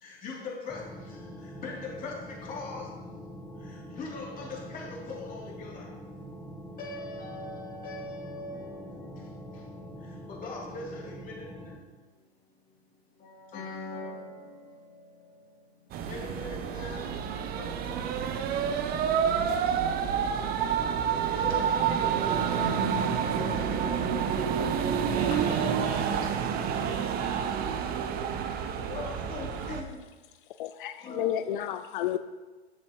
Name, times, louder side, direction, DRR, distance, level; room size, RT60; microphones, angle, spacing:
voice 1, 0.0-1.2 1.6-2.9 3.7-5.9 6.8-9.9 10.3-11.5 13.2-15.1 15.4-15.5 16.1-17.2 17.6-18.3 18.7-18.8 19.7-20.1 21.2-22.8 23.4-24.1 28.9-30.0 31.0-31.6, left 3 dB, 25° left, -4 dB, 3.0 m, -41 dB
sound 1, 0.7-11.8, equal, 5° left, 1.0 m, -44 dB
sound 2, 15.9-29.8, right 7 dB, 30° right, 0.7 m, -28 dB
voice 2, 24.2-24.6 25.1-27.5, right 3 dB, 85° right, 2 dB, 1.9 m, -43 dB
voice 3, 30.6-32.2, left 12 dB, 50° left, 11 dB, 0.5 m, -31 dB
11.5 x 7.3 x 3.1 m, 1.3 s
hypercardioid pair, 115°, 33 cm